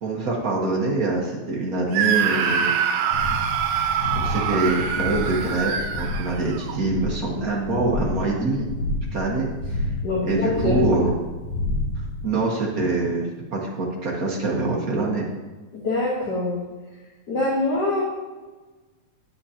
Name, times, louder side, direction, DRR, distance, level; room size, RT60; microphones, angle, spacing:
voice 1, 0.0-2.8 4.1-8.7 9.1-9.8 10.2-11.1 12.2-15.3, right 2 dB, 70° right, -2 dB, 0.8 m, -25 dB
Screaming, 1.9-6.8, right 7 dB, 90° right, 2.0 m, -24 dB
sound 1, 3.1-12.2, left 2 dB, 65° left, 2.5 m, -30 dB
voice 2, 10.0-10.8 15.7-16.6 17.3-18.0, left 2 dB, 50° left, -4 dB, 1.3 m, -24 dB
9.3 x 8.4 x 2.8 m, 1.3 s
omnidirectional pair, 3.4 m